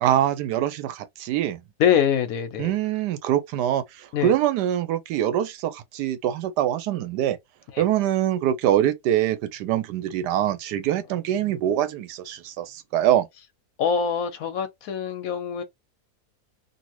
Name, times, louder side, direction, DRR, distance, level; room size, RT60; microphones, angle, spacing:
voice 1, 0.0-1.6 2.6-7.4 7.8-13.3, right 11 dB, 85° right, 1.2 m, -24 dB
voice 2, 1.8-2.7 4.1-4.3 13.8-15.6, left 8 dB, 65° left, 1.0 m, -24 dB
2.7 x 2.6 x 2.9 m
omnidirectional pair, 1.7 m